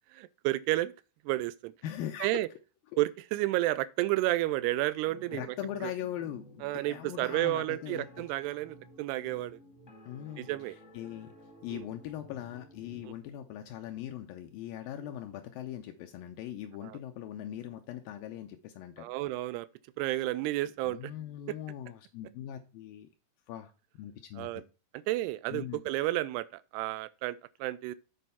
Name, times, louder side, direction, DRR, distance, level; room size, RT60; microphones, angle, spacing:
voice 1, 0.1-0.9 1.3-1.7 2.2-2.5 3.0-5.6 5.8-5.9 6.6-9.6 10.4-10.8 11.7-11.9 13.0-13.1 15.0-15.1 16.8-17.0 19.0-19.7 20.0-21.1 21.5-21.6 24.4-24.6 25.1-28.0, right 17 dB, 85° right, 2.6 m, -31 dB
voice 2, 1.8-2.5 2.9-3.0 5.3-8.1 10.0-10.5 10.9-11.3 11.6-19.1 20.8-23.1 23.5-24.6 25.5-25.8, left 11 dB, 80° left, 2.1 m, -40 dB
sound 1, 5.1-14.3, left 1 dB, 45° left, 0.9 m, -54 dB
7.7 x 4.5 x 5.6 m
omnidirectional pair, 4.7 m